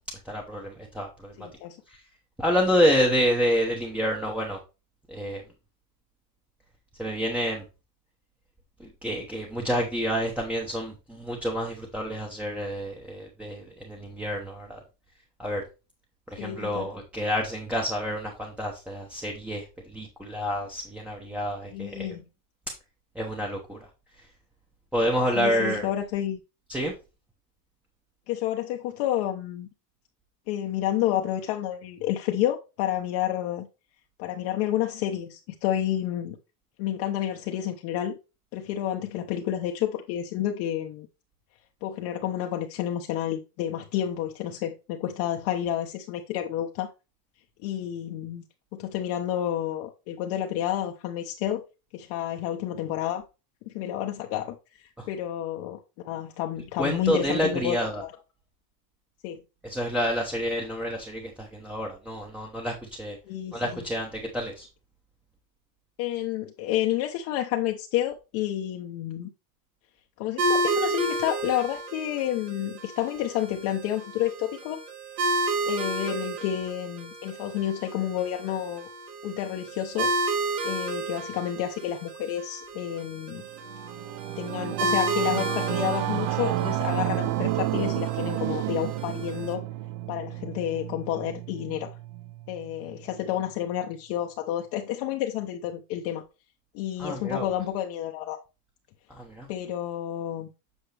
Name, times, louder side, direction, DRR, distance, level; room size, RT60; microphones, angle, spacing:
voice 1, 0.2-1.5 1.9-2.0 2.4-4.6 5.1-5.4 7.0-7.6 8.8-14.8 15.4-15.6 16.3-22.1 23.1-23.8 24.9-25.9 26.7-26.9 55.0-55.1 56.8-58.0 59.6-63.2 63.5-64.7 97.0-97.5 99.1-99.5, equal, 5° right, 0.8 m, -28 dB
voice 2, 1.4-1.8 16.4-16.9 21.7-22.2 25.3-26.4 28.3-29.7 30.5-33.7 34.2-36.4 36.8-38.1 38.5-41.1 41.8-46.9 47.6-48.4 48.7-51.6 51.9-53.2 53.7-58.1 59.2-59.4 63.3-63.8 66.0-69.3 70.2-74.8 75.7-78.9 79.2-80.1 80.6-83.4 84.4-89.6 90.1-91.9 92.5-96.2 96.7-98.4 99.5-100.5, left 11 dB, 50° left, 0.9 m, -30 dB
sound 1, 70.4-89.5, right 2 dB, 75° right, 2.4 m, -32 dB
Singing / Musical instrument, 83.4-93.1, right 15 dB, 45° right, 0.5 m, -31 dB
8.2 x 5.4 x 3.3 m
supercardioid pair, 155°, 47 cm